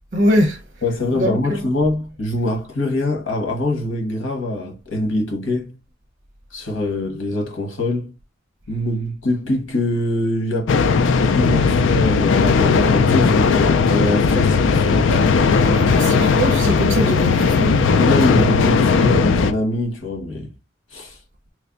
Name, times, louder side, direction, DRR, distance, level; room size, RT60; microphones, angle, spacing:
voice 1, 0.1-0.6 1.2-1.6 15.1-15.3 15.6-17.9, equal, 50° right, 1.0 m, -22 dB
voice 2, 0.8-5.7 6.5-8.1 8.7-10.7 11.2-15.3 18.0-20.5 20.9-21.2, left 1 dB, 90° left, 1.3 m, -23 dB
sound 1, 10.7-19.5, left 5 dB, 75° left, 0.4 m, -16 dB
3.3 x 2.1 x 3.7 m
head